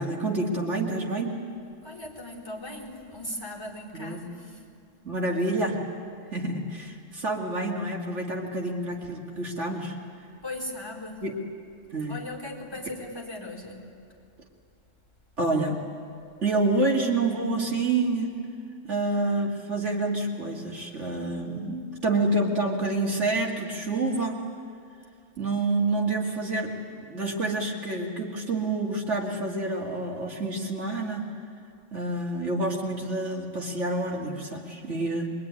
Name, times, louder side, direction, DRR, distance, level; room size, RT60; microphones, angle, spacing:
voice 1, 0.0-1.4 3.9-4.3 5.0-5.8 6.3-10.0 11.2-11.4 11.9-12.2 15.4-15.8 16.4-18.3 18.8-24.4 25.4-31.3 31.9-35.3, right 2 dB, 70° right, 0 dB, 2.7 m, -28 dB
voice 2, 1.8-4.6 10.4-11.2 12.1-13.9, left 1 dB, 20° left, -2 dB, 4.5 m, -38 dB
23.5 x 23.5 x 9.9 m, 2.4 s
omnidirectional pair, 1.3 m